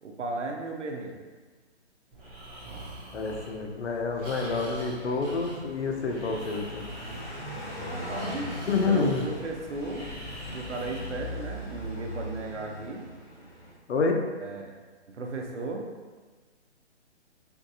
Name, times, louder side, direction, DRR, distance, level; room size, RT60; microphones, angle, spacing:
voice 1, 0.0-1.1 7.8-8.5 8.8-10.1 10.5-13.0 14.4-14.7 15.1-15.9, right 2 dB, 85° right, 1 dB, 0.8 m, -35 dB
Breathing, 2.1-11.8, right 1 dB, 10° right, 0.7 m, -44 dB
voice 2, 3.1-6.9 8.7-9.2 13.9-14.2, left 4 dB, 70° left, 3 dB, 0.7 m, -28 dB
Car passing by, 5.3-13.7, equal, 45° left, 1.5 m, -39 dB
4.5 x 2.5 x 2.6 m, 1.4 s
hypercardioid pair, 150°, 35 cm